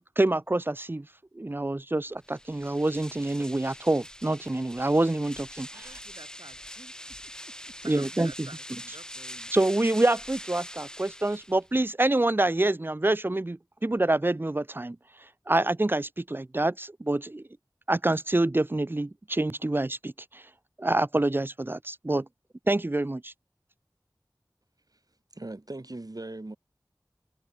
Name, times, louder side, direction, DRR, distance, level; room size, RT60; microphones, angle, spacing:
voice 1, 0.2-1.1 1.4-5.9 7.9-8.3 9.5-15.0 15.5-17.4 17.9-20.4 20.8-22.3 22.7-23.3, right 2 dB, 30° right, 0.5 m, -26 dB
sound 1, 2.2-11.8, equal, 10° left, 2.0 m, -44 dB
voice 2, 5.7-7.2 7.5-9.5, right 2 dB, 90° right, 6.0 m, -50 dB
voice 3, 25.3-26.6, right 2 dB, 55° right, 4.4 m, -39 dB
wide cardioid pair, 50°, 8 cm